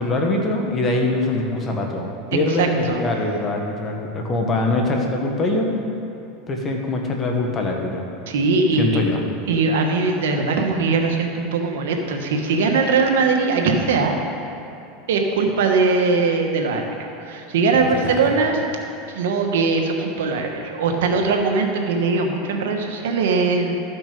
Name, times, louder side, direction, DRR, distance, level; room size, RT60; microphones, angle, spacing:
voice 1, 0.0-5.7 6.5-8.0 8.8-9.2 17.7-18.4, left 2 dB, 30° left, 1 dB, 1.5 m, -23 dB
voice 2, 2.5-3.0 8.3-9.1 9.5-14.2 15.1-18.6 19.1-23.7, right 4 dB, 85° right, 3 dB, 1.2 m, -20 dB
13.0 x 6.1 x 5.3 m, 2.6 s
supercardioid pair, 125°, 0 cm